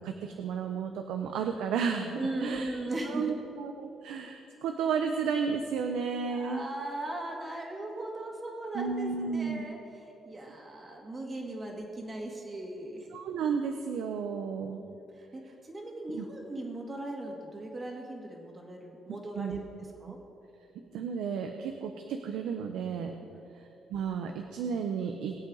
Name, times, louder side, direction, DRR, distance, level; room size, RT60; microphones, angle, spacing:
voice 1, 0.0-2.7 3.0-6.6 8.7-9.6 13.1-14.8 16.1-16.3 19.3-19.6 20.1-20.2 20.9-23.2 23.5-25.4, right 6 dB, 85° right, 5 dB, 0.8 m, -33 dB
voice 2, 2.2-3.3 6.3-9.8 10.2-13.1 14.8-14.9 15.3-19.6 20.0-20.2 23.4-23.5, right 1 dB, 25° right, 0 dB, 2.2 m, -38 dB
22.5 x 8.3 x 4.0 m, 2.8 s
cardioid pair, 120°, 0 cm